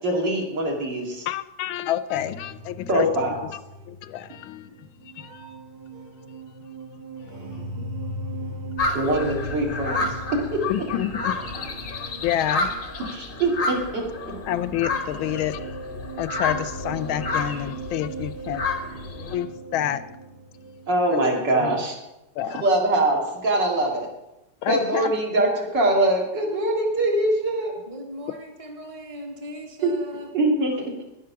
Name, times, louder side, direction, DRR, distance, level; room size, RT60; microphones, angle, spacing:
voice 1, 0.0-1.3 2.9-3.4 7.8-7.9 8.9-10.6 13.1-14.3 20.9-21.9 22.4-24.1 24.7-27.7 29.8-29.9 30.3-31.1, right 1 dB, 60° right, 0 dB, 3.0 m, -23 dB
voice 2, 1.3-3.6 3.9-5.5 8.0-8.4 10.7-11.4 12.2-12.7 13.9-15.6 16.2-18.6 19.3-20.0 21.1-21.2 21.5-21.8 22.3-22.6 24.6-25.2, left 11 dB, 80° left, 14 dB, 1.4 m, -29 dB
sound 1, 2.1-21.0, right 1 dB, 85° right, 2.6 m, -39 dB
sound 2, 8.8-19.4, left 3 dB, 40° left, 0.8 m, -30 dB
voice 3, 27.9-30.3, equal, 20° right, 2 dB, 1.5 m, -38 dB
10.5 x 10.5 x 5.8 m, 0.92 s
omnidirectional pair, 2.2 m